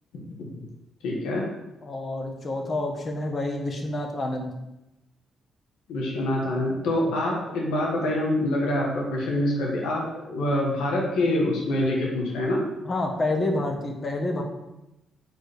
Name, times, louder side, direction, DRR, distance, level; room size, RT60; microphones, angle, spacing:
voice 1, 1.0-1.5 5.9-12.6, left 1 dB, 90° left, -2 dB, 1.6 m, -25 dB
voice 2, 1.8-4.5 12.8-14.4, left 2 dB, 35° left, 2 dB, 1.5 m, -28 dB
6.2 x 4.9 x 5.2 m, 0.95 s
cardioid pair, 90°, 0 cm